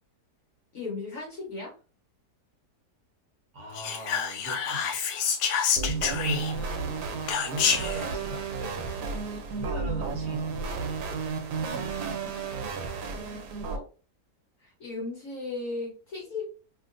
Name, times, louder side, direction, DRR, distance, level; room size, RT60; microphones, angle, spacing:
voice 1, 0.7-1.7 13.1-13.8 14.6-16.4, left 3 dB, 60° left, -2 dB, 1.2 m, -37 dB
voice 2, 3.5-5.0 5.6-6.5 6.8-8.8 9.6-11.0, equal, 60° right, 2 dB, 0.9 m, -40 dB
Whispering, 3.7-6.7 7.3-8.0, left 7 dB, 80° left, 1.2 m, -28 dB
sound 1, 5.8-13.8, right 4 dB, 80° right, 1.2 m, -32 dB
2.9 x 2.5 x 2.5 m, 0.35 s
omnidirectional pair, 1.8 m